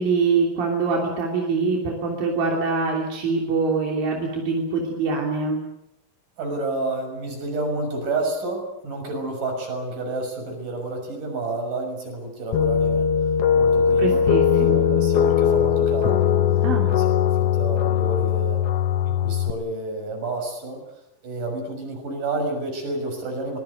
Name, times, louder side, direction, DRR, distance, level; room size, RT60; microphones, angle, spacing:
voice 1, 0.0-5.6 14.0-15.0 16.6-16.9, right 4 dB, 90° right, 0 dB, 4.9 m, -24 dB
voice 2, 6.4-13.1 13.5-14.3 14.6-16.3 16.8-18.6 19.1-20.8 21.2-23.6, right 2 dB, 65° right, 4 dB, 8.1 m, -30 dB
sound 1, 12.5-19.5, left 8 dB, 65° left, 1.7 m, -20 dB
24.5 x 21.0 x 8.2 m, 0.81 s
omnidirectional pair, 4.0 m